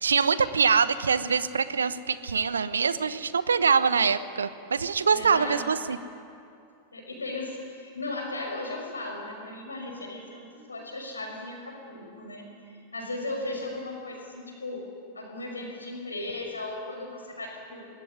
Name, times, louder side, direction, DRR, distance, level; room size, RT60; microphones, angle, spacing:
voice 1, 0.0-6.0, right 5 dB, 70° right, 15 dB, 0.9 m, -24 dB
voice 2, 5.1-5.7 6.9-14.9 15.1-17.9, left 2 dB, 80° left, 2 dB, 5.9 m, -36 dB
24.5 x 21.0 x 9.8 m, 2.5 s
figure-of-eight pair, 90°, 0 cm